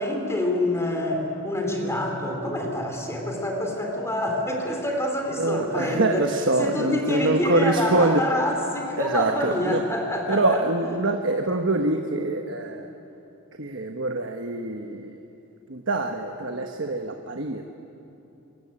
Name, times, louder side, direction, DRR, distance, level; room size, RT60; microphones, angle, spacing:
voice 1, 0.0-6.3 6.6-10.6, left 1 dB, 15° left, 2 dB, 3.6 m, -26 dB
voice 2, 5.4-8.2 9.0-9.8 10.3-12.9 13.6-15.2 15.7-17.6, right 2 dB, 60° right, 4 dB, 1.2 m, -25 dB
25.0 x 22.0 x 8.8 m, 2.9 s
head